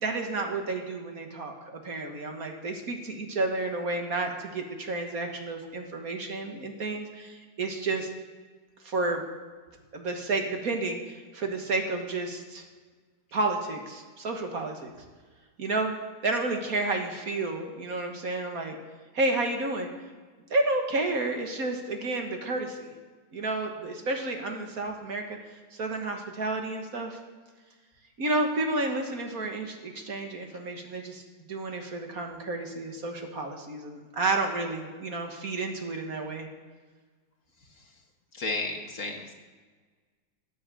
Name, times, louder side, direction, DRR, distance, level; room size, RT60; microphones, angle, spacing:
voice 1, 0.0-8.1 8.8-9.2 9.9-12.6 13.3-14.9 15.6-15.9 16.2-18.7 19.1-19.9 20.5-22.9 23.3-25.4 25.7-27.2 28.2-31.2 31.5-36.5, right 2 dB, 45° right, 4 dB, 1.7 m, -31 dB
voice 2, 38.3-39.3, left 3 dB, 40° left, 3 dB, 1.6 m, -33 dB
13.5 x 8.9 x 7.5 m, 1.4 s
omnidirectional pair, 2.4 m